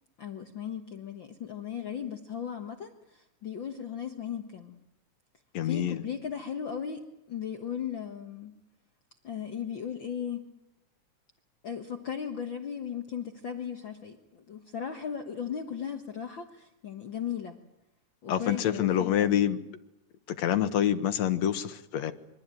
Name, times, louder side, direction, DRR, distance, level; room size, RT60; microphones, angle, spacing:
voice 1, 0.2-4.8 5.6-8.6 9.2-10.5 11.6-17.6 18.2-19.4, left 8 dB, 50° left, 5 dB, 1.8 m, -37 dB
voice 2, 5.5-6.0 18.3-19.6 20.3-22.1, left 10 dB, 65° left, 9 dB, 2.5 m, -26 dB
25.5 x 22.5 x 9.1 m, 0.88 s
omnidirectional pair, 3.4 m